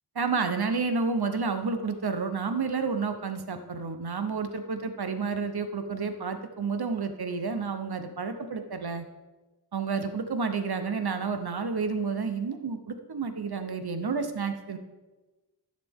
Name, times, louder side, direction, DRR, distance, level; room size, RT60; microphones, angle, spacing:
voice 1, 0.1-9.0 9.7-14.8, right 4 dB, 60° right, 8 dB, 0.9 m, -30 dB
13.0 x 6.7 x 3.6 m, 1.2 s
wide cardioid pair, 70°, 43 cm